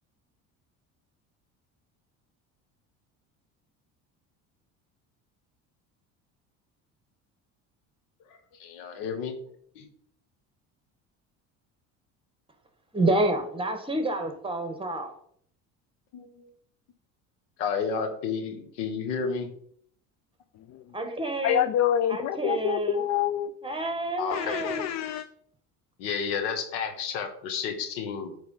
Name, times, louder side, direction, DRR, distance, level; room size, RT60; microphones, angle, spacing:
voice 1, 8.3-9.4 9.7-9.9 16.1-16.5 17.6-19.5 24.2-24.7 26.0-28.4, left 6 dB, 85° left, 7 dB, 1.4 m, -32 dB
voice 2, 12.9-15.1 20.9-21.7 22.1-23.0 23.6-24.9, right 2 dB, 15° right, 6 dB, 1.5 m, -28 dB
voice 3, 21.4-23.5 24.3-25.3, left 10 dB, 45° left, 11 dB, 0.5 m, -26 dB
8.2 x 3.7 x 5.5 m, 0.64 s
supercardioid pair, 85°, 38 cm